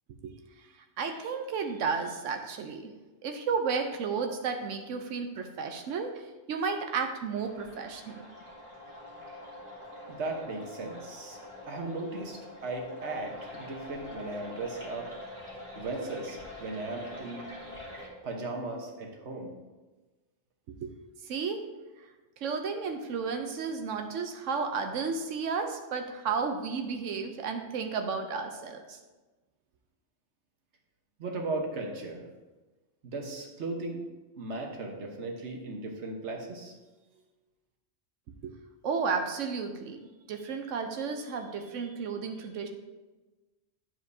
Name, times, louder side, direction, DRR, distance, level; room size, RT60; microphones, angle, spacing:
voice 1, 0.2-0.7 1.0-2.9 3.2-8.3 20.8-21.0 21.2-21.7 22.4-29.0 38.4-38.6 38.8-42.7, right 5 dB, 85° right, 5 dB, 1.0 m, -33 dB
sound 1, 7.4-18.1, left 1 dB, 25° right, 1.9 m, -45 dB
voice 2, 10.1-11.4 11.7-15.1 15.7-17.4 18.2-19.5 31.2-32.2 33.0-34.1 34.4-36.8, right 2 dB, 65° right, 2 dB, 1.4 m, -37 dB
9.4 x 7.3 x 2.7 m, 1.2 s
omnidirectional pair, 1.3 m